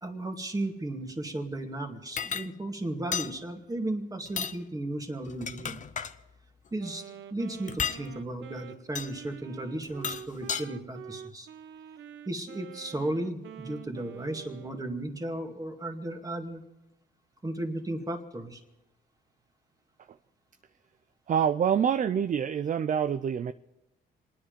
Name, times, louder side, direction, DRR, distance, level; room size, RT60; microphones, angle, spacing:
voice 1, 0.0-5.8 6.7-7.0 7.3-11.5 12.3-16.6 17.4-18.6, right 1 dB, 20° right, 4 dB, 2.3 m, -35 dB
sound 1, 2.2-2.5 3.1-3.3 4.3-4.6 5.3-6.2 7.7-8.0 9.0-9.1 9.8-10.6, left 6 dB, 40° left, 0.8 m, -33 dB
Wind instrument woodwind instrument, 6.8-15.0, right 9 dB, 70° right, 0.8 m, -46 dB
voice 2, 21.3-23.5, right 8 dB, 40° right, 12 dB, 0.5 m, -26 dB
27.0 x 10.0 x 5.2 m, 0.98 s
cardioid pair, 90°, 20 cm